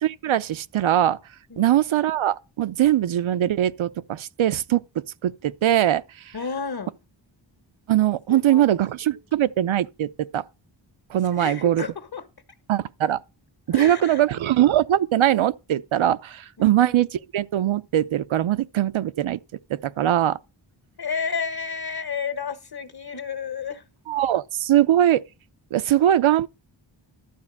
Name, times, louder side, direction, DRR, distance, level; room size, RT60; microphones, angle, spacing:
voice 1, 0.0-1.2 1.6-4.8 5.2-6.0 7.9-10.1 10.3-10.4 11.1-11.9 12.7-13.2 13.7-19.4 19.7-20.4 24.1-25.2 25.7-26.5, right 12 dB, 90° right, 0.7 m, -21 dB
voice 2, 6.3-6.9 8.3-8.7 11.3-12.2 13.7-14.2 16.6-16.8 21.0-23.8, left 6 dB, 55° left, 1.8 m, -31 dB
12.5 x 4.2 x 7.2 m
wide cardioid pair, 70°, 46 cm